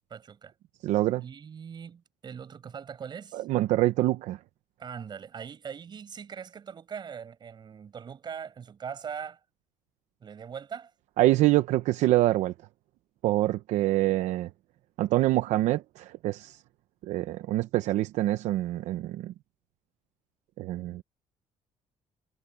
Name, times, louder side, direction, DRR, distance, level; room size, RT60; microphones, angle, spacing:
voice 1, 0.1-0.5 1.2-3.4 4.8-9.4 10.2-10.9, right 7 dB, 40° right, 7.7 m, -41 dB
voice 2, 0.8-1.2 3.3-4.4 11.2-12.5 13.2-14.5 15.0-16.6 17.0-19.3 20.6-21.0, right 16 dB, 80° right, 0.7 m, -25 dB
cardioid pair, 140°, 12 cm